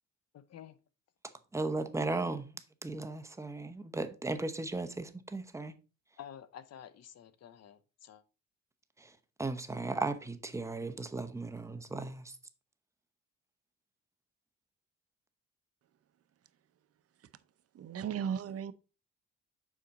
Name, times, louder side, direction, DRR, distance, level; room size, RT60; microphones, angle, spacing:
voice 1, 0.3-0.8 6.2-8.2, left 9 dB, 55° left, 0.8 m, -50 dB
voice 2, 1.2-5.7 9.0-12.4, right 3 dB, 10° right, 0.9 m, -36 dB
voice 3, 17.7-18.7, right 8 dB, 50° right, 0.7 m, -35 dB
7.2 x 5.0 x 4.1 m
cardioid pair, 90°, 30 cm